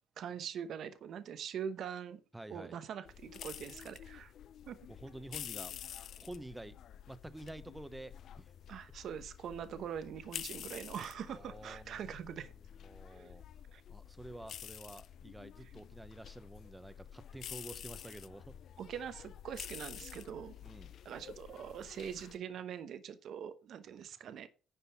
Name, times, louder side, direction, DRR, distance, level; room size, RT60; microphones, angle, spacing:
voice 1, 0.2-2.2 2.5-4.3 4.7-4.8 8.7-12.5 13.1-13.3 13.7-13.8 18.8-20.5 21.0-24.5, right 8 dB, 70° right, 0.9 m, -43 dB
voice 2, 2.3-2.8 4.9-5.7 6.2-6.8 7.1-8.5 11.3-12.1 12.8-13.4 13.9-18.6 20.6-20.9, right 1 dB, 10° right, 1.0 m, -49 dB
sound 1, 3.0-22.4, left 10 dB, 70° left, 0.5 m, -49 dB
10.0 x 5.4 x 5.8 m
cardioid pair, 90°, 0 cm